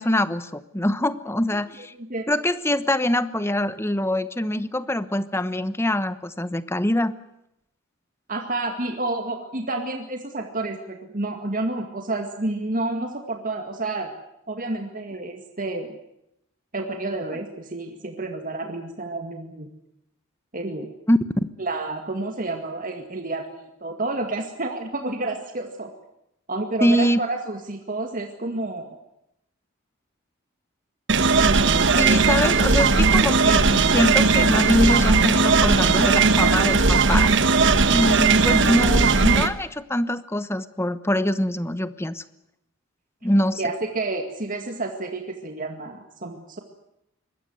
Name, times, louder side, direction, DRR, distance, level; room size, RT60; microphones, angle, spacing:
voice 1, 0.0-1.9 2.3-7.1 21.1-21.5 26.8-27.2 32.0-37.3 37.9-42.2 43.2-43.6, left 1 dB, 10° left, 13 dB, 1.1 m, -23 dB
voice 2, 8.3-14.1 14.5-16.0 16.7-19.7 20.5-20.9 21.6-25.9 26.5-29.0 31.4-32.2 38.4-38.5 43.6-46.6, right 2 dB, 40° right, 4 dB, 2.1 m, -30 dB
sound 1, 31.1-39.5, right 4 dB, 60° right, 1.4 m, -18 dB
25.0 x 21.0 x 7.9 m, 0.81 s
head